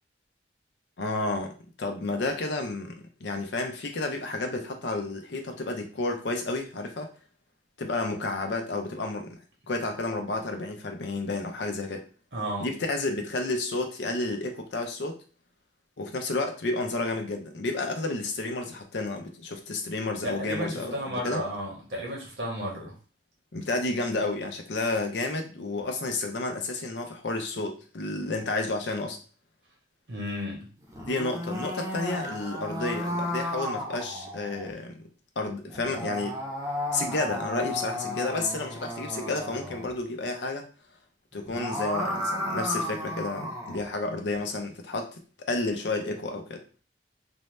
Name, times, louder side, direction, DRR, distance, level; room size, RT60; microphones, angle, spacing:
voice 1, 1.0-1.5 1.8-7.1 7.8-9.4 9.7-12.0 12.6-15.1 16.0-21.4 23.5-29.2 31.0-35.0 35.4-36.4 36.9-40.6 41.3-46.6, left 2 dB, 70° left, 4 dB, 0.6 m, -31 dB
voice 2, 12.3-12.7 20.2-23.0 30.1-30.7 36.9-37.0, equal, 70° right, -1 dB, 0.9 m, -33 dB
sound 1, 30.8-34.7 35.7-39.9 41.3-43.8, left 1 dB, 20° right, 0.6 m, -33 dB
2.6 x 2.1 x 3.1 m, 0.37 s
head